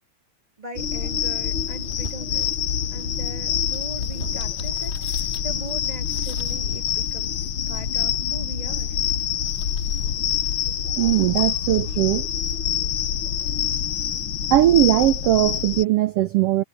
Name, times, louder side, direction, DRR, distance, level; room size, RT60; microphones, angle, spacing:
voice 1, 0.6-2.5 2.9-9.0, right 3 dB, 15° right, 1.7 m, -40 dB
sound 1, 0.8-15.8, left 9 dB, 55° left, 1.6 m, -26 dB
sound 2, 0.8-11.8, left 1 dB, 20° left, 7.5 m, -43 dB
voice 2, 11.0-12.3 14.5-16.6, right 14 dB, 85° right, 1.3 m, -19 dB
omnidirectional pair, 3.4 m